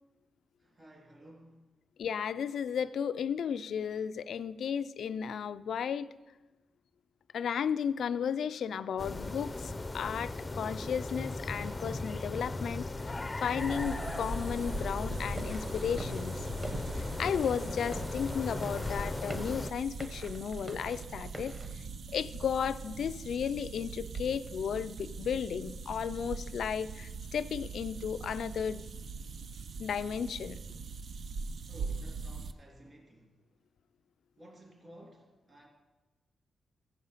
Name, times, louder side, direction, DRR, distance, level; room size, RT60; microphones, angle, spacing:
voice 1, 0.6-1.7 31.7-33.4 34.4-35.7, equal, 35° right, -1 dB, 3.0 m, -54 dB
voice 2, 2.0-6.1 7.3-16.3 17.0-21.5 22.1-28.8 29.8-30.6, left 7 dB, 75° left, 14 dB, 0.3 m, -34 dB
sound 1, 9.0-19.7, left 2 dB, 20° left, 0.5 m, -37 dB
sound 2, 13.6-32.5, right 4 dB, 60° right, 0.4 m, -42 dB
sound 3, 15.4-21.7, right 1 dB, 15° right, 1.0 m, -46 dB
15.0 x 5.1 x 5.6 m, 1.1 s
cardioid pair, 100°, 0 cm